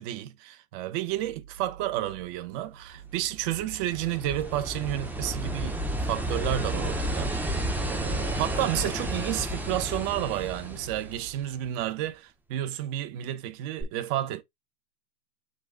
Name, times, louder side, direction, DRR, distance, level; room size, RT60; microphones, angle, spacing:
voice 1, 0.0-14.4, right 13 dB, 40° right, 0.9 m, -31 dB
sound 1, 1.1-11.3, right 8 dB, 90° right, 1.0 m, -50 dB
sound 2, 3.2-11.7 13.8-13.9, right 1 dB, 5° right, 0.6 m, -32 dB
6.3 x 2.4 x 3.5 m
hypercardioid pair, 120°, 44 cm